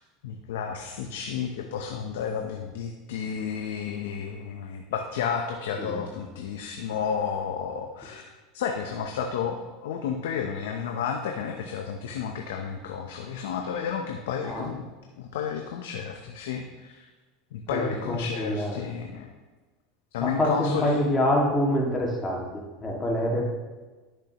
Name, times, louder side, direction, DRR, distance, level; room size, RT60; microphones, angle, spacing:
voice 1, 0.2-8.3 8.5-14.9 15.2-17.1 17.5-19.3 20.1-21.0, left 7 dB, 85° left, 3 dB, 0.8 m, -32 dB
voice 2, 17.7-18.8 20.2-23.4, left 1 dB, 20° left, -2 dB, 2.0 m, -26 dB
11.5 x 6.8 x 3.0 m, 1.3 s
supercardioid pair, 110°, 0 cm